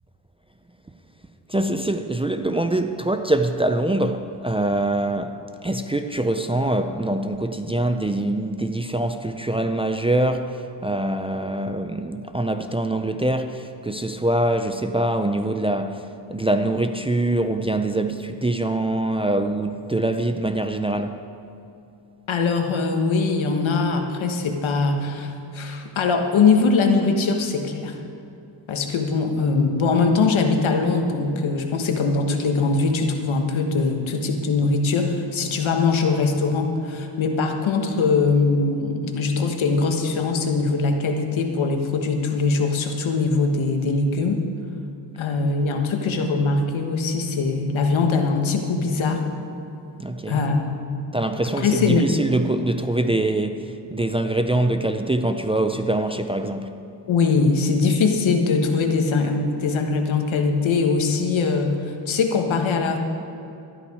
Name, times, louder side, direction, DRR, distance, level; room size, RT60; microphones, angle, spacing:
voice 1, 1.5-10.6 10.8-21.2 50.0-50.4 51.1-56.8, right 1 dB, 15° right, 0.4 m, -24 dB
voice 2, 22.3-28.0 28.7-44.4 45.2-49.2 50.3-51.0 51.4-52.1 57.1-63.0, left 4 dB, 85° left, 1.5 m, -22 dB
13.0 x 11.5 x 4.9 m
wide cardioid pair, 125°, 46 cm